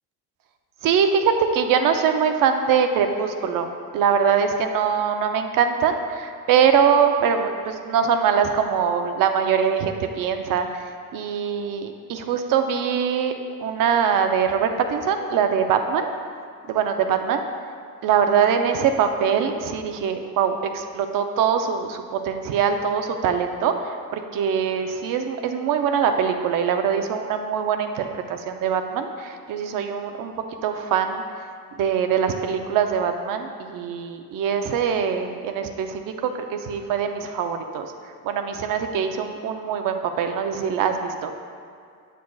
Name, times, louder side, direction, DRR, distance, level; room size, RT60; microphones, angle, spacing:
voice 1, 0.8-10.8 11.1-13.3 13.6-16.1 16.7-17.4 18.0-30.3 30.6-31.2 31.8-37.9 38.2-41.3, right 7 dB, 70° right, 6 dB, 0.6 m, -23 dB
8.5 x 8.3 x 2.3 m, 2.2 s
cardioid pair, 140°, 34 cm